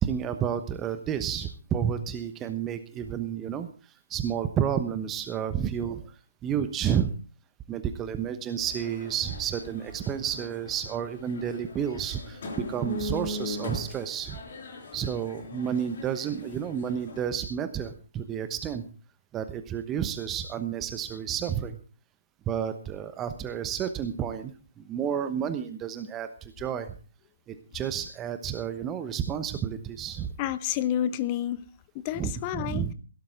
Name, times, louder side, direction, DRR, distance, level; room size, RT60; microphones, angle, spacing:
voice 1, 0.0-3.7 4.1-6.1 6.4-7.1 7.7-12.4 12.7-14.4 14.9-18.8 19.3-21.8 22.5-26.9 27.5-30.3 32.2-32.9, right 8 dB, 15° right, 1.0 m, -31 dB
sound 1, 8.6-17.3, left 2 dB, 40° left, 4.8 m, -40 dB
voice 2, 30.4-31.6 31.9-32.9, left 11 dB, 25° left, 0.7 m, -29 dB
16.5 x 13.0 x 3.7 m
figure-of-eight pair, 140°, 0 cm